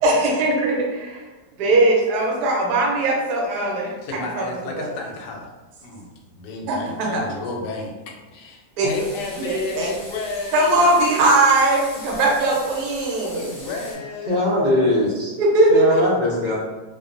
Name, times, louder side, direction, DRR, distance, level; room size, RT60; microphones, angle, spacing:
voice 1, 0.0-1.2 1.6-3.9 4.4-4.5 4.8-4.9 6.7-7.2 8.8-8.9 9.4-9.9 10.5-13.5 15.4-16.0, right 2 dB, 75° right, -1 dB, 1.2 m, -19 dB
voice 2, 4.0-5.5 5.8-7.9 8.3-11.1 12.5-12.6 13.2-14.7, left 3 dB, 80° left, 0 dB, 1.1 m, -32 dB
sound 1, 8.9-13.9, left 1 dB, 25° left, 1.2 m, -40 dB
voice 3, 14.3-15.3 15.7-16.5, left 1 dB, 45° right, -7 dB, 0.8 m, -20 dB
2.7 x 2.2 x 2.4 m, 1.2 s
omnidirectional pair, 1.8 m